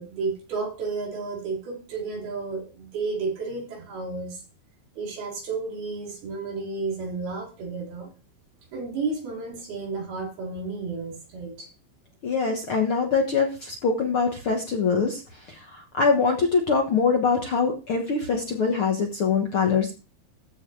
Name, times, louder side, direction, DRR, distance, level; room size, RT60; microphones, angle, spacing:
voice 1, 0.0-4.4 5.0-8.1 8.7-11.7, right 4 dB, 85° right, -1 dB, 5.9 m, -32 dB
voice 2, 12.2-19.9, left 5 dB, 55° left, 2 dB, 1.5 m, -23 dB
14.5 x 5.0 x 4.7 m, 0.33 s
omnidirectional pair, 4.3 m